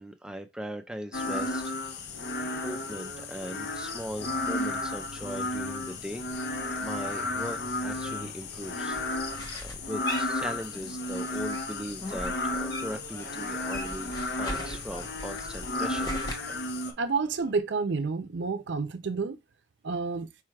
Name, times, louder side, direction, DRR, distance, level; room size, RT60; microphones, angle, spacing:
voice 1, 0.0-2.2 2.5-9.0 9.6-16.1, equal, 5° right, 0.4 m, -39 dB
sound 1, 1.1-16.9, left 2 dB, 60° left, 0.6 m, -33 dB
Laughter, 6.1-8.3 8.6-10.2 10.4-11.6 12.3-15.4 15.7-17.6, left 1 dB, 85° left, 3.0 m, -51 dB
sound 2, 8.9-11.0 11.3-13.1 13.4-16.3, equal, 20° left, 0.9 m, -39 dB
voice 2, 17.0-19.4 19.8-20.3, right 4 dB, 80° right, 0.5 m, -29 dB
4.7 x 2.3 x 4.6 m
head